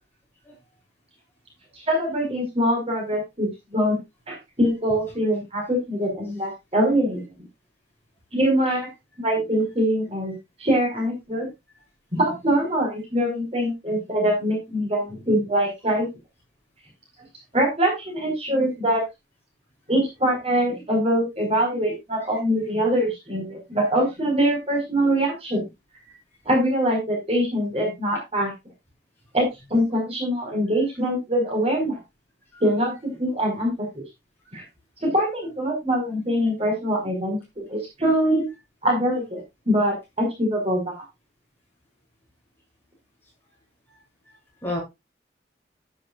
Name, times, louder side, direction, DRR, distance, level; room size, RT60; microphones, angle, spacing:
voice 1, 1.7-4.0 4.3-7.2 8.3-8.9 9.2-11.5 12.1-16.1 17.5-19.0 19.9-25.6 26.4-28.5 29.3-32.0 32.6-33.7 34.5-34.6 35.0-38.4 38.8-39.4 39.6-40.9, equal, 35° right, 0 dB, 4.8 m, -23 dB
voice 2, 43.9-44.8, left 1 dB, 10° left, -4 dB, 7.6 m, -35 dB
11.5 x 11.0 x 2.4 m, 0.21 s
head